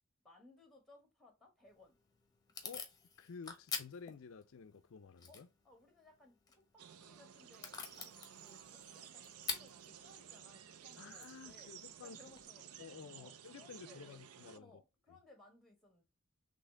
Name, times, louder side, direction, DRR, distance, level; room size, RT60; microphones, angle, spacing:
voice 1, 0.2-2.0 5.3-11.7 12.0-12.8 13.1-14.3 14.5-16.0, left 2 dB, ahead, 1.6 m, -63 dB
Packing tape duct tape / Tearing, 1.6-12.4, left 5 dB, 20° left, 1.0 m, -49 dB
voice 2, 3.2-5.5 11.0-12.2 12.8-14.7, left 5 dB, 60° left, 0.4 m, -52 dB
sound 1, 6.8-14.6, right 9 dB, 80° right, 0.5 m, -55 dB
4.1 x 3.2 x 3.7 m
head